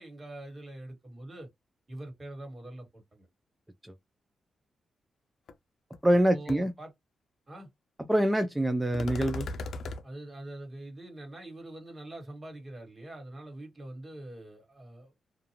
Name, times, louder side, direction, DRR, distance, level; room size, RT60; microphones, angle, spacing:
voice 1, 0.0-1.5 1.9-3.3 6.3-6.9 7.5-7.7 10.0-15.1, right 1 dB, 25° right, 1.6 m, -44 dB
sound 1, 5.5-5.6 5.9-6.2 6.5-6.6 8.9-10.0, left 2 dB, 75° left, 0.5 m, -37 dB
voice 2, 6.0-6.7 8.1-9.5, right 1 dB, 10° right, 0.4 m, -25 dB
2.5 x 2.3 x 2.9 m
cardioid pair, 100°, 0 cm